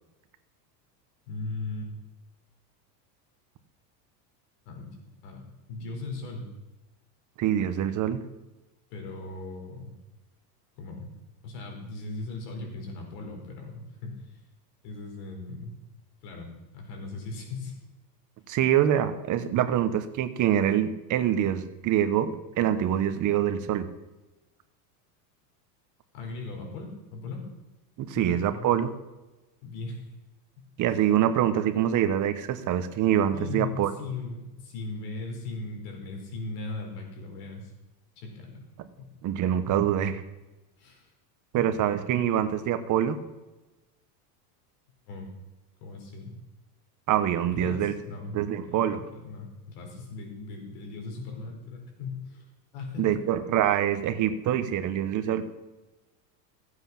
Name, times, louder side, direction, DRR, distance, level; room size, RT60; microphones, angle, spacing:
voice 1, 1.3-1.9 4.7-6.5 8.9-9.9 10.8-11.1 11.4-14.3 14.8-15.7 16.2-16.5 16.7-17.8 26.1-27.4 28.1-28.7 29.6-30.0 30.6-30.7 33.3-37.7 38.2-38.6 39.0-39.1 40.8-41.1 45.1-45.3 45.8-46.4 47.5-52.5 52.7-53.1, left 3 dB, 70° left, 2 dB, 4.4 m, -38 dB
voice 2, 7.4-8.2 18.5-23.9 28.0-28.9 30.8-33.9 39.2-40.2 41.5-43.2 47.1-47.9 48.3-49.0 53.0-55.5, right 10 dB, 35° right, 10 dB, 1.2 m, -25 dB
15.0 x 8.0 x 5.9 m, 1.1 s
supercardioid pair, 125°, 49 cm